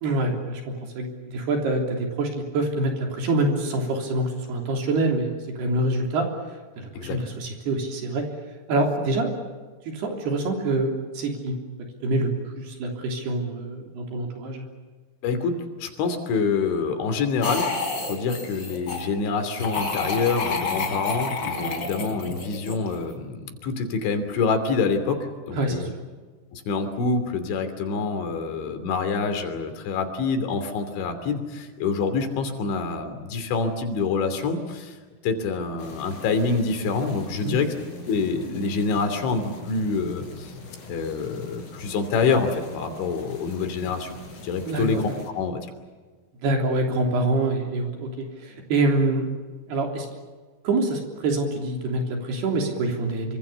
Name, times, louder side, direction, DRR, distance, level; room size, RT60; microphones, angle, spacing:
voice 1, 0.0-8.3 8.7-9.3 9.9-11.6 12.0-14.7 25.6-25.9 37.3-37.5 44.7-45.1 46.4-49.3 49.7-50.1 50.6-53.4, right 2 dB, 65° right, 2 dB, 5.3 m, -26 dB
voice 2, 15.2-17.7 18.0-25.9 26.5-35.0 35.2-37.7 38.1-40.5 40.9-44.1 44.4-45.6, left 4 dB, 85° left, 8 dB, 5.3 m, -26 dB
sound 1, 17.4-19.1 19.6-23.1, left 4 dB, 25° left, 4.5 m, -29 dB
sound 2, 35.8-45.3, left 2 dB, 60° left, 7.3 m, -43 dB
26.5 x 25.0 x 7.0 m, 1.4 s
omnidirectional pair, 5.2 m